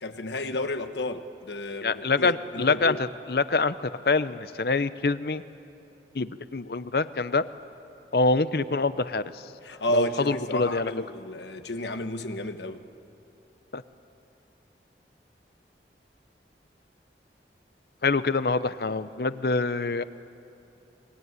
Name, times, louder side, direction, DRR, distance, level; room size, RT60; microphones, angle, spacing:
voice 1, 0.0-3.0 9.6-12.8, left 1 dB, 85° left, 9 dB, 1.3 m, -32 dB
voice 2, 1.8-5.4 6.1-7.4 8.1-9.2 9.9-10.9 13.7-13.8 18.0-20.0, left 3 dB, 60° left, 14 dB, 0.7 m, -25 dB
24.5 x 21.5 x 9.6 m, 2.9 s
head